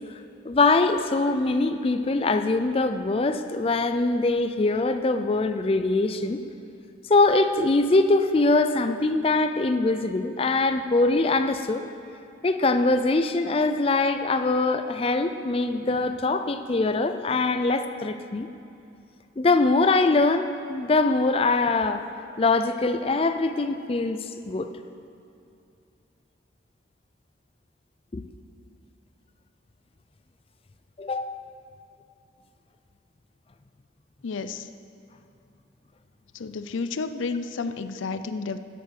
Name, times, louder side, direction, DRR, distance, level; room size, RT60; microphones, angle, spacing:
voice 1, 0.4-6.4 7.0-11.8 12.4-18.5 19.4-22.0 22.4-24.7 28.1-28.2 31.0-31.3, left 3 dB, 30° left, 9 dB, 0.4 m, -23 dB
voice 2, 34.2-34.7 36.3-38.6, left 4 dB, 90° left, 11 dB, 0.5 m, -31 dB
11.0 x 7.7 x 6.4 m, 2.7 s
head